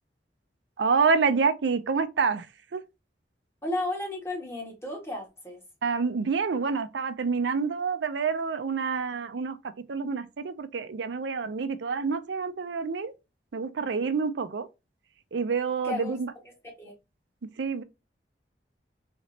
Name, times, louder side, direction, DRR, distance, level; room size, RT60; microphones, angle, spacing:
voice 1, 0.8-2.5 2.7-2.8 5.8-9.6 9.9-13.1 13.5-14.7 15.3-16.3 17.6-17.8, right 5 dB, 90° right, 0.5 m, -27 dB
voice 2, 3.6-5.6 15.8-16.2 16.8-16.9, left 1 dB, 15° left, 1.5 m, -33 dB
3.9 x 3.3 x 2.7 m
head